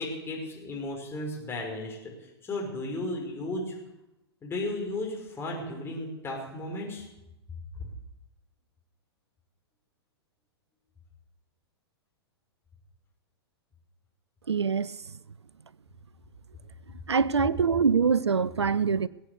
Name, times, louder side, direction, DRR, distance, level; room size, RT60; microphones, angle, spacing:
voice 1, 0.0-2.1 2.4-3.7 4.4-7.1, left 2 dB, 15° left, 5.3 m, -34 dB
voice 2, 14.5-15.0 17.1-19.1, right 5 dB, 85° right, 0.4 m, -24 dB
20.5 x 8.4 x 6.9 m
figure-of-eight pair, 105°, 14 cm